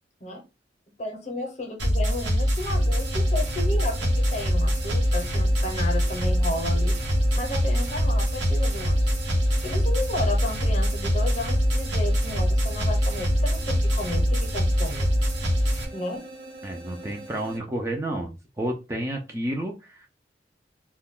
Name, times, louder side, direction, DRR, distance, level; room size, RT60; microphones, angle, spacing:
voice 1, 1.0-7.0 7.3-9.1 9.6-15.1 15.9-16.2, left 2 dB, 40° left, 4 dB, 0.7 m, -33 dB
sound 1, 1.8-15.8, equal, 80° right, 0.8 m, -23 dB
sound 2, 2.7-17.6, right 2 dB, 50° right, 1.0 m, -43 dB
voice 2, 16.6-18.3 18.6-20.1, right 1 dB, 15° right, 1 dB, 0.4 m, -30 dB
2.3 x 2.2 x 3.5 m, 0.28 s
head